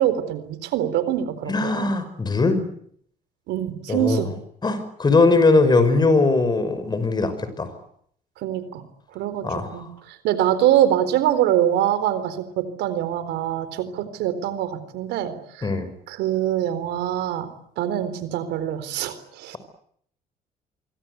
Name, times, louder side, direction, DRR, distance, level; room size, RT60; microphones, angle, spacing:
voice 1, 0.0-1.9 3.5-4.3 8.4-8.8 9.1-9.4 9.7-9.9 10.2-15.7 16.1-19.6, right 11 dB, 85° right, 12 dB, 4.0 m, -24 dB
voice 2, 1.5-2.6 3.9-4.3 4.6-7.7 9.4-9.7 15.6-15.9, left 3 dB, 25° left, 12 dB, 5.8 m, -20 dB
26.5 x 24.0 x 8.2 m, 0.66 s
cardioid pair, 110°, 17 cm